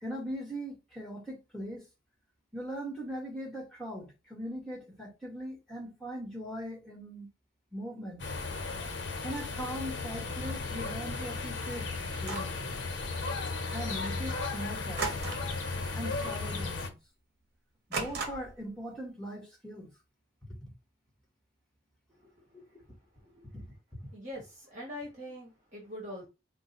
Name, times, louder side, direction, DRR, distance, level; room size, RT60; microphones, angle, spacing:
voice 1, 0.0-1.8 2.5-7.3 7.7-8.2 9.2-11.9 12.2-12.6 13.7-15.3 15.9-17.0 17.9-19.9 20.4-20.7 22.5-22.6 23.5-23.6, equal, 5° left, 1.5 m, -40 dB
sound 1, 8.2-16.9, left 3 dB, 80° left, 0.8 m, -35 dB
sound 2, 12.1-12.6 15.0-15.6 15.9-16.2 16.6-16.7 17.9-18.7, right 4 dB, 60° right, 1.0 m, -36 dB
voice 2, 24.1-26.3, equal, 40° right, 1.4 m, -43 dB
4.6 x 2.2 x 4.1 m
head